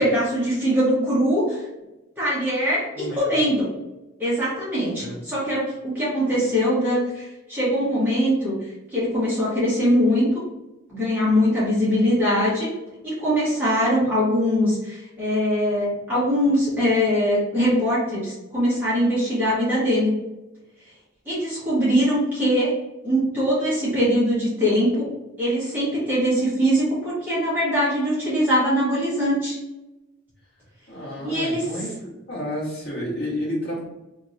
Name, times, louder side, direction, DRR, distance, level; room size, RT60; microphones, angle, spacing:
voice 1, 0.0-1.7 2.2-3.7 4.2-10.4 10.9-12.7 13.0-20.1 21.2-22.8 23.0-25.1 25.4-29.6 31.2-31.7, equal, 10° right, -10 dB, 1.2 m, -22 dB
voice 2, 3.0-3.3 5.0-5.2 30.9-32.0 32.3-33.9, left 1 dB, 50° left, -6 dB, 1.4 m, -30 dB
2.9 x 2.8 x 2.6 m, 1.0 s
head